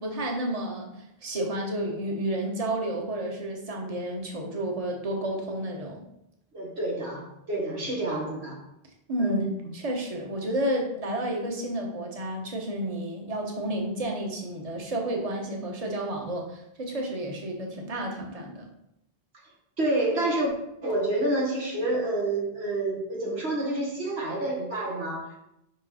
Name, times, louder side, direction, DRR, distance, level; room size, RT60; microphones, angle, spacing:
voice 1, 0.0-6.0 9.1-9.5 9.7-18.7, right 1 dB, 35° right, 1 dB, 1.2 m, -31 dB
voice 2, 6.5-8.6 9.2-9.5 19.8-20.5 20.8-25.4, right 2 dB, 85° right, -3 dB, 2.0 m, -28 dB
5.4 x 5.3 x 4.2 m, 0.81 s
omnidirectional pair, 1.1 m